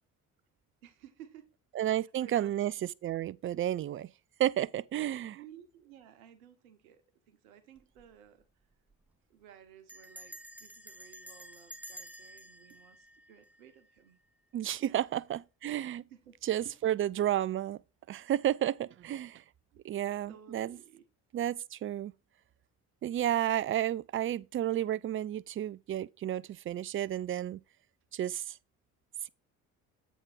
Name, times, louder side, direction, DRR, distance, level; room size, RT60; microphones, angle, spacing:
voice 1, 0.8-1.5 1.8-2.5 5.3-8.5 9.3-14.2 14.8-15.0 16.0-16.8 19.7-19.8 20.3-21.1, right 9 dB, 85° right, 1.1 m, -56 dB
voice 2, 1.7-4.1 4.4-5.4 14.5-16.0 16.4-17.8 18.1-19.4 19.8-20.8 21.3-22.1 23.0-27.6 28.1-28.6, right 12 dB, 30° right, 0.4 m, -32 dB
Bell, 7.8-8.1 8.4-8.5 8.7-9.1 9.9-14.0, equal, 5° right, 1.1 m, -50 dB
8.0 x 3.6 x 5.8 m
hypercardioid pair, 50°, 41 cm